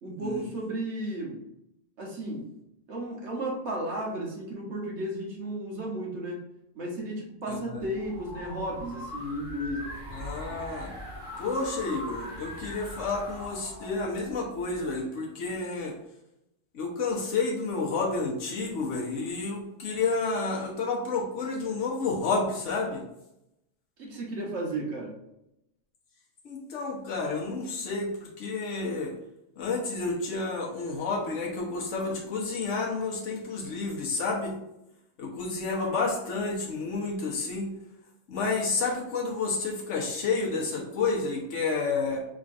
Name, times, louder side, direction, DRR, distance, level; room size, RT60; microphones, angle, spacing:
voice 1, 0.0-1.4 2.0-2.5 2.9-6.4 6.7-9.9 24.0-25.1, right 1 dB, 60° right, -2 dB, 1.4 m, -34 dB
voice 2, 7.5-7.9 10.1-10.9 11.4-15.9 16.7-23.0 26.4-29.1 29.6-34.6 35.2-37.7 38.3-42.2, left 3 dB, 65° left, -2 dB, 1.3 m, -30 dB
sound 1, 7.7-14.9, equal, 40° right, 1.2 m, -41 dB
4.3 x 3.7 x 2.6 m, 0.85 s
omnidirectional pair, 1.4 m